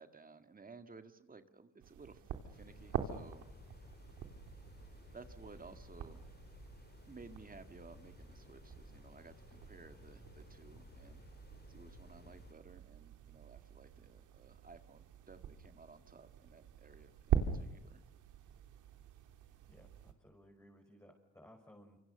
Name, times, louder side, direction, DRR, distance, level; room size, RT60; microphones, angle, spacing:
voice 1, 0.0-3.5 5.1-6.2 7.1-11.3 11.7-18.1, right 4 dB, 30° right, 9 dB, 2.0 m, -57 dB
sound 1, 1.8-20.1, right 8 dB, 85° right, 3.1 m, -44 dB
sound 2, 2.5-12.5, left 4 dB, 35° left, 2.3 m, -57 dB
voice 2, 19.7-22.0, equal, 10° left, 0 dB, 5.7 m, -60 dB
27.5 x 26.0 x 6.7 m, 0.89 s
cardioid pair, 90°, 30 cm